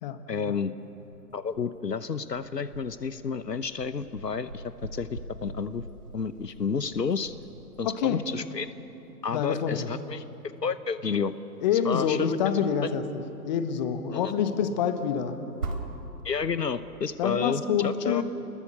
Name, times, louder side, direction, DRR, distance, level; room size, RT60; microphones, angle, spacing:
voice 1, 0.3-0.7 1.3-5.8 6.1-7.3 7.8-8.7 9.2-10.2 10.6-11.3 11.8-12.4 12.8-12.9 14.1-14.3 16.2-18.2, left 5 dB, 70° left, 13 dB, 1.1 m, -30 dB
sound 1, 0.8-16.7, right 3 dB, 55° right, 3.9 m, -44 dB
voice 2, 7.8-8.2 9.3-9.9 11.6-13.0 13.4-15.4 17.2-18.2, left 8 dB, 25° left, 8 dB, 1.5 m, -26 dB
29.5 x 21.0 x 7.0 m, 3.0 s
figure-of-eight pair, 125°, 50 cm